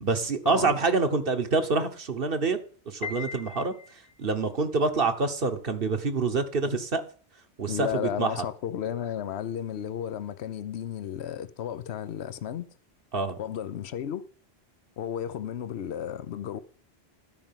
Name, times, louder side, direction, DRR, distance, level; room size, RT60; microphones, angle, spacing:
voice 1, 0.0-2.6 2.9-3.7 4.2-7.0 7.6-8.4 13.1-13.4, right 4 dB, 60° right, 1.3 m, -26 dB
Piano, 3.0-4.3, left 6 dB, 60° left, 1.7 m, -39 dB
voice 2, 7.7-12.7 13.4-14.3 15.0-16.6, left 9 dB, 80° left, 1.0 m, -33 dB
12.5 x 5.1 x 7.3 m
omnidirectional pair, 1.1 m